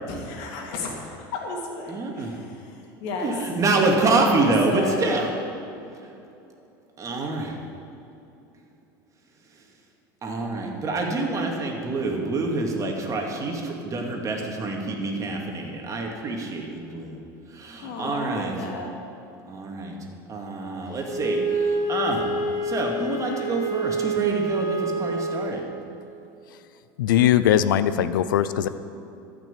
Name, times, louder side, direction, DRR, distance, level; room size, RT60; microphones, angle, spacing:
voice 1, 0.1-2.7 3.0-3.4 4.3-5.2 17.8-18.9, left 3 dB, 70° left, 0 dB, 2.7 m, -33 dB
voice 2, 1.9-2.3 3.2-5.3 7.0-7.5 10.2-17.2 17.5-18.6 19.5-20.0 20.3-22.3 22.6-25.6, right 3 dB, 30° right, 1 dB, 2.4 m, -26 dB
Wind instrument woodwind instrument, 21.0-25.5, right 2 dB, 40° left, 2.8 m, -27 dB
voice 3, 27.0-28.7, left 10 dB, 85° left, 14 dB, 0.6 m, -20 dB
13.5 x 6.2 x 8.5 m, 2.8 s
supercardioid pair, 100°, 11 cm